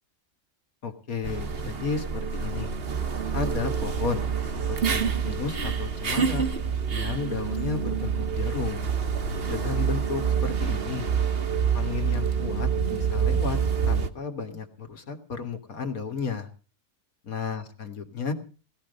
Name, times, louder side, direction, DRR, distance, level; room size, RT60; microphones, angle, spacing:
voice 1, 0.8-2.7 3.3-4.3 4.7-6.4 6.9-8.9 9.5-11.1 11.7-13.6 13.9-16.5 17.3-18.3, left 5 dB, 75° left, 6 dB, 2.4 m, -33 dB
sound 1, 1.2-14.1, right 6 dB, 45° right, 1.2 m, -27 dB
19.0 x 13.5 x 5.4 m, 0.40 s
omnidirectional pair, 1.5 m